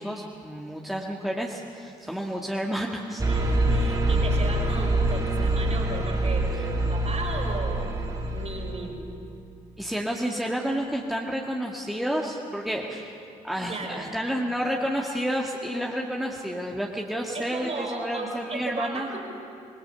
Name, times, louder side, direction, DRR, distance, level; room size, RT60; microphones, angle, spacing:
voice 1, 0.0-3.2 6.6-6.7 9.8-19.1, equal, ahead, -1 dB, 2.0 m, -30 dB
sound 1, 3.2-8.9, right 1 dB, 20° right, 2.5 m, -25 dB
voice 2, 3.3-9.0 13.7-14.1 14.4-14.5 17.3-19.2, right 3 dB, 35° right, 1 dB, 5.3 m, -35 dB
25.5 x 21.5 x 5.7 m, 2.5 s
figure-of-eight pair, 40°, 19 cm